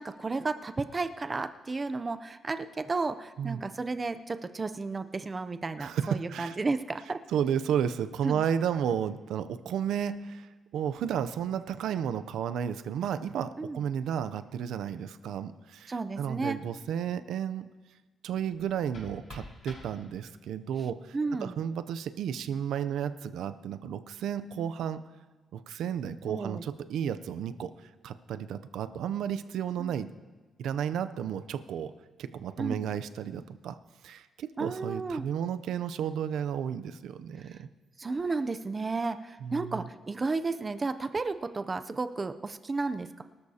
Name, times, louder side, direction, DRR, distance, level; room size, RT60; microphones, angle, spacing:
voice 1, 0.0-7.2 8.2-8.4 13.6-13.8 15.9-16.6 21.1-21.6 26.3-26.6 29.8-29.9 32.6-32.8 34.6-35.3 37.5-37.6 38.0-43.2, right 3 dB, 20° right, 10 dB, 0.5 m, -33 dB
voice 2, 5.8-6.6 7.3-17.7 18.2-25.0 25.5-27.7 28.0-30.1 30.6-31.9 32.2-33.8 34.0-37.7 39.4-39.8, right 8 dB, 85° right, 13 dB, 0.5 m, -33 dB
sound 1, 18.5-20.5, left 1 dB, 55° left, 4.9 m, -49 dB
23.0 x 13.0 x 2.8 m, 1.3 s
wide cardioid pair, 170°, 0 cm